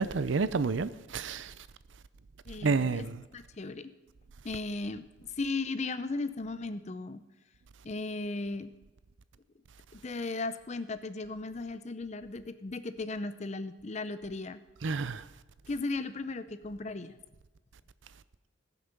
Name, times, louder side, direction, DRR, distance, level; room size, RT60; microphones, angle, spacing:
voice 1, 0.0-1.5 2.6-3.2 14.8-15.2, right 4 dB, 70° right, 0.5 m, -29 dB
voice 2, 2.5-3.1 3.3-3.9 4.4-7.2 7.8-8.7 9.9-14.6 15.7-17.2, left 3 dB, 35° left, 0.5 m, -36 dB
19.5 x 7.0 x 5.3 m
head